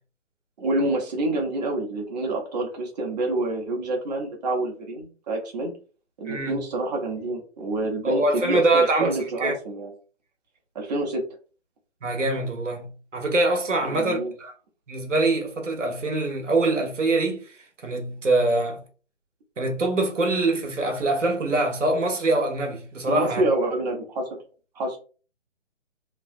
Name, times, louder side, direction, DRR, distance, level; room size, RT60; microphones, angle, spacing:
voice 1, 0.6-5.7 6.2-9.9 10.7-11.2 13.8-14.3 23.1-24.2 24.7-25.0, right 2 dB, 35° right, 0.8 m, -27 dB
voice 2, 6.3-6.6 8.0-9.1 9.4-9.5 12.0-14.5 14.9-17.5 17.8-18.8 19.6-23.4, right 2 dB, 85° right, 1.0 m, -24 dB
3.1 x 2.3 x 2.5 m
figure-of-eight pair, 145°, 36 cm